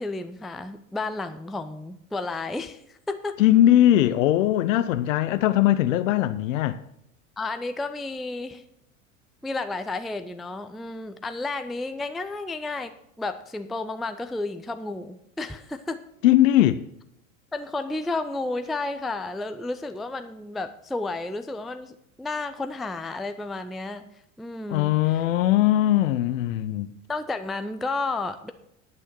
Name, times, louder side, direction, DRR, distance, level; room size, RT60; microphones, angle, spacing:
voice 1, 0.0-3.4 7.4-8.6 9.4-12.9 13.2-16.0 17.5-24.1 24.4-25.2 27.1-28.5, left 3 dB, ahead, 0.3 m, -32 dB
voice 2, 3.4-6.8 16.2-16.8 24.7-26.9, left 13 dB, 70° left, 0.6 m, -20 dB
10.5 x 6.3 x 7.4 m
hypercardioid pair, 85°, 40 cm